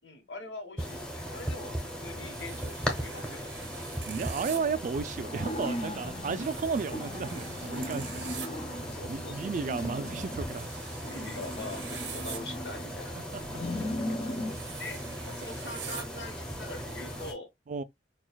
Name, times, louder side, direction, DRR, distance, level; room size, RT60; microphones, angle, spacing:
voice 1, 0.0-3.4 6.3-6.5 8.8-9.4 11.0-13.2 14.8-17.5, left 2 dB, 80° left, 1.2 m, -43 dB
sound 1, 0.8-17.3, equal, 5° left, 0.8 m, -38 dB
sound 2, 2.3-4.6 6.3-8.5 10.5-12.4 14.4-16.0, right 8 dB, 85° right, 0.7 m, -45 dB
voice 2, 4.1-8.3 8.8-10.7 13.3-13.4 17.7-17.8, right 5 dB, 45° right, 0.3 m, -33 dB
sound 3, 5.2-6.5 6.9-9.0 9.3-10.6 11.0-12.9 13.4-14.6, left 1 dB, 35° left, 0.5 m, -38 dB
6.0 x 2.3 x 2.3 m
head